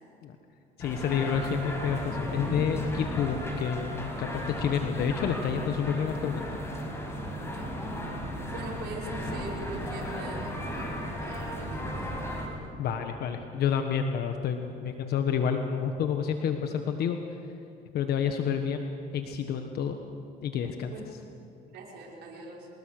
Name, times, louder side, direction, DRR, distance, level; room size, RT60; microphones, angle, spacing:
voice 1, 0.8-6.4 12.8-17.2 17.9-18.9 19.1-20.0 20.4-20.9, left 7 dB, 70° left, 5 dB, 1.4 m, -29 dB
sound 1, 0.8-12.5, equal, 15° left, 5.8 m, -35 dB
voice 2, 7.4-7.8 8.5-12.3 20.9-21.0 21.7-22.7, right 3 dB, 80° right, -3 dB, 6.1 m, -42 dB
25.5 x 20.5 x 6.7 m, 2.7 s
cardioid pair, 110°, 17 cm